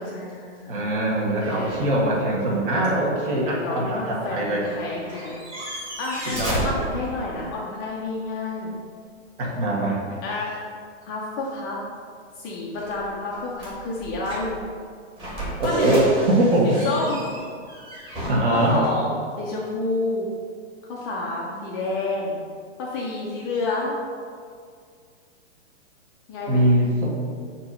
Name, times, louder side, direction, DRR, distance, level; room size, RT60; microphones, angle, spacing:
voice 1, 0.0-0.9 2.2-2.7 3.2-8.8 10.2-10.6 11.1-11.8 12.4-14.6 15.6-16.0 16.6-17.3 18.5-20.3 20.8-22.4 22.8-23.9 26.3-26.6, left 2 dB, 20° left, -4 dB, 0.5 m, -30 dB
voice 2, 0.7-4.7 6.3-6.8 9.4-10.0 15.6-16.8 18.3-18.8 26.5-27.1, right 1 dB, 45° right, -3 dB, 1.8 m, -22 dB
sound 1, 1.4-2.2 2.5-2.6 4.7-4.8 5.0-7.6 12.8-14.7 15.2-18.9, right 1 dB, 15° right, 1.7 m, -34 dB
8.5 x 3.0 x 5.4 m, 2.1 s
hypercardioid pair, 155°, 35 cm